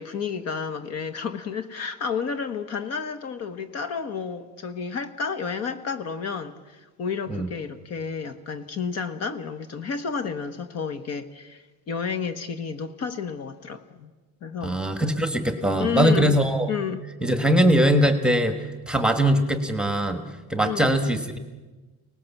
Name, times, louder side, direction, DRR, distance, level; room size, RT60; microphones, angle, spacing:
voice 1, 0.0-14.1 14.4-14.8 15.8-16.3 16.7-17.0 20.6-20.9, left 6 dB, 45° left, 10 dB, 1.3 m, -31 dB
voice 2, 14.6-16.7 17.2-18.6 18.9-21.4, right 1 dB, ahead, 6 dB, 1.3 m, -21 dB
30.0 x 19.0 x 7.2 m, 1.2 s
cardioid pair, 175°, 37 cm